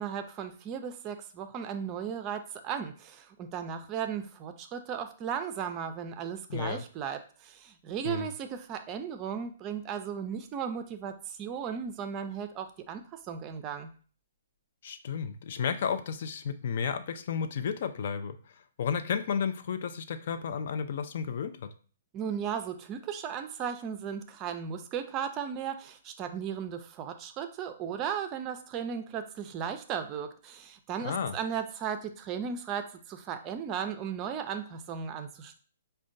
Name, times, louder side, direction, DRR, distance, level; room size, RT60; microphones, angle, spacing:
voice 1, 0.0-13.0 13.3-13.9 22.1-35.6, right 8 dB, 30° right, 8 dB, 0.4 m, -36 dB
voice 2, 6.5-6.8 8.0-8.3 14.8-18.4 18.8-21.7 31.0-31.3, left 7 dB, 55° left, 10 dB, 0.3 m, -32 dB
5.0 x 2.2 x 2.5 m, 0.40 s
figure-of-eight pair, 125°, 0 cm